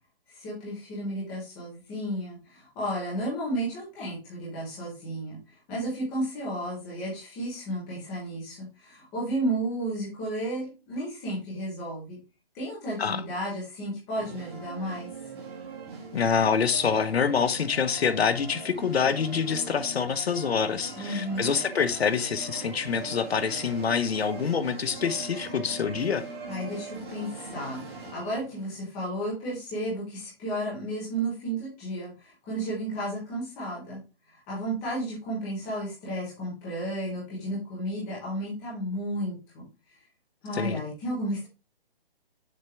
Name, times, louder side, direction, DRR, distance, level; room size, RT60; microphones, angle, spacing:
voice 1, 0.3-5.4 5.7-12.2 12.5-15.1 20.9-21.5 26.5-34.0 34.3-39.6 40.4-41.5, right 1 dB, 5° left, 0.7 m, -33 dB
sound 1, 14.1-28.8, right 3 dB, 25° right, 1.7 m, -41 dB
voice 2, 16.1-26.2 40.6-40.8, left 6 dB, 85° left, 1.0 m, -26 dB
6.6 x 3.4 x 5.6 m
hypercardioid pair, 175°, 30 cm